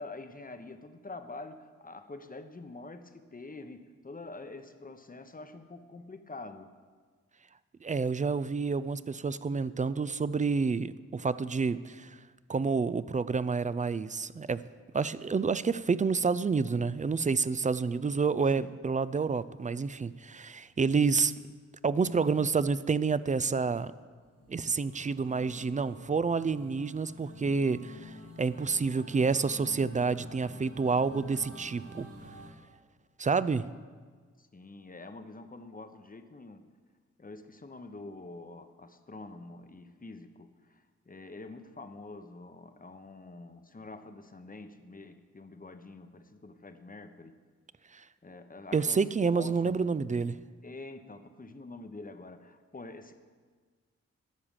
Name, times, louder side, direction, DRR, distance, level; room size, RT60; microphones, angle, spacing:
voice 1, 0.0-6.7 18.5-18.7 34.4-36.7 37.2-47.4 48.2-49.0 49.3-49.9 50.6-53.1, left 3 dB, 25° left, 9 dB, 0.9 m, -46 dB
voice 2, 7.8-12.2 12.5-14.6 14.9-21.3 21.8-23.9 24.5-32.1 33.2-33.7 47.9-48.0 48.7-50.4, right 5 dB, 25° right, 16 dB, 0.4 m, -29 dB
sound 1, 24.2-32.5, equal, 70° right, 3.2 m, -49 dB
12.0 x 4.8 x 7.4 m, 1.5 s
supercardioid pair, 45°, 32 cm